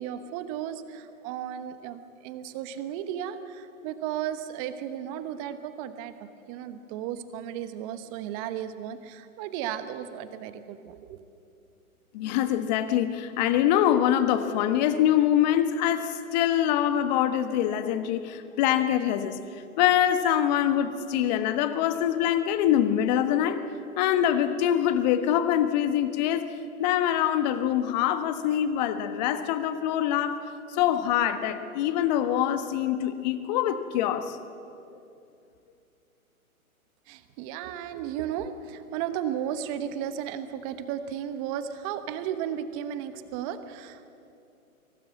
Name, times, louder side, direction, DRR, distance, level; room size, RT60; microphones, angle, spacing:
voice 1, 0.0-11.2 37.1-44.1, right 10 dB, 25° right, 11 dB, 1.1 m, -34 dB
voice 2, 12.1-19.4 19.8-23.6 24.0-26.5 26.8-30.4 30.7-34.4, left 10 dB, 30° left, 10 dB, 1.3 m, -24 dB
23.0 x 19.0 x 7.8 m, 2.7 s
hypercardioid pair, 140°, 43 cm